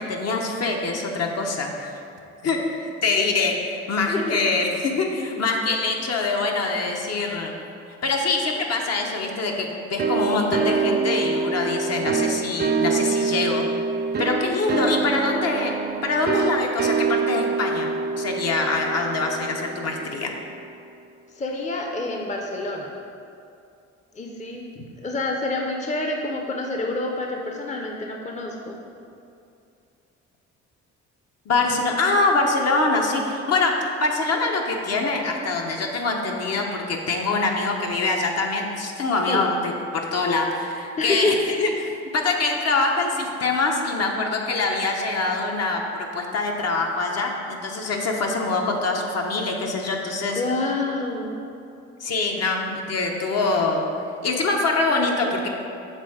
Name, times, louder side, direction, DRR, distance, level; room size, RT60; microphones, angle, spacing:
voice 1, 0.0-1.9 2.4-7.5 8.0-13.6 14.2-20.3 24.8-24.9 31.5-41.7 42.1-50.4 52.0-53.9 54.2-55.5, left 3 dB, 55° left, 1 dB, 0.9 m, -24 dB
voice 2, 4.0-4.4 15.0-15.1 21.3-22.9 24.1-24.7 25.0-28.8 39.3-39.4 41.0-41.5 50.3-51.4, left 2 dB, 25° left, 1 dB, 0.6 m, -27 dB
sound 1, 10.0-20.5, right 5 dB, 35° right, 0.4 m, -25 dB
6.7 x 3.6 x 4.8 m, 2.5 s
cardioid pair, 90°, 30 cm